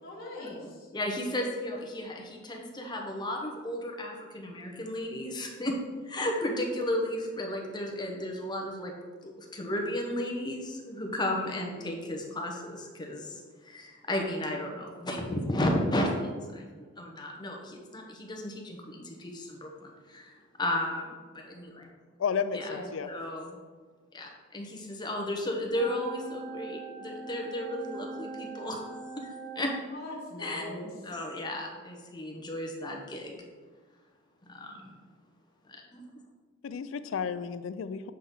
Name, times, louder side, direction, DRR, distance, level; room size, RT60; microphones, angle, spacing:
voice 1, 0.0-0.9 22.6-22.9 29.9-30.9, left 1 dB, 50° left, -6 dB, 1.5 m, -40 dB
voice 2, 0.9-5.8 6.1-8.9 9.2-13.2 13.7-16.1 16.5-19.7 20.1-20.3 20.6-21.1 21.5-21.9 22.5-22.7 23.1-23.6 24.1-28.8 29.6-29.7 30.4-30.6 31.0-33.3 34.5-34.9 35.9-36.0, left 1 dB, 20° left, 1 dB, 0.8 m, -33 dB
voice 3, 22.2-23.1 36.6-38.1, left 6 dB, 70° left, 13 dB, 0.3 m, -32 dB
sound 1, 25.8-29.8, right 4 dB, 40° right, 0.7 m, -41 dB
7.5 x 4.1 x 3.6 m, 1.5 s
head